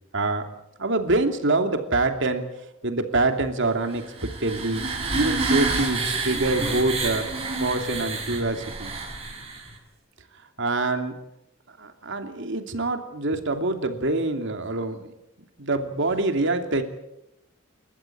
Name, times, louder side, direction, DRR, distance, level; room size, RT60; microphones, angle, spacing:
voice 1, 0.1-0.4 0.8-2.4 2.8-4.9 5.1-7.3 7.6-9.0 10.6-11.1 11.8-15.1 15.6-16.8, right 2 dB, 65° right, 6 dB, 2.8 m, -25 dB
sound 1, 3.9-9.7, right 3 dB, 30° right, 5.9 m, -28 dB
29.0 x 14.0 x 8.7 m, 0.87 s
head